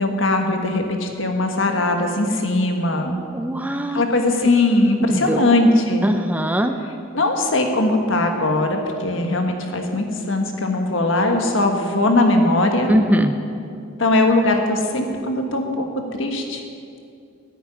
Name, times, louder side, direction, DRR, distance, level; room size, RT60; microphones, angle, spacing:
voice 1, 0.0-3.1 3.9-6.1 7.1-12.9 14.0-15.9 16.2-16.6, left 2 dB, 65° left, 4 dB, 1.5 m, -20 dB
voice 2, 3.3-4.0 5.0-5.4 6.0-6.7 12.9-13.3, equal, 10° right, 7 dB, 0.5 m, -20 dB
10.0 x 8.8 x 9.8 m, 2.5 s
head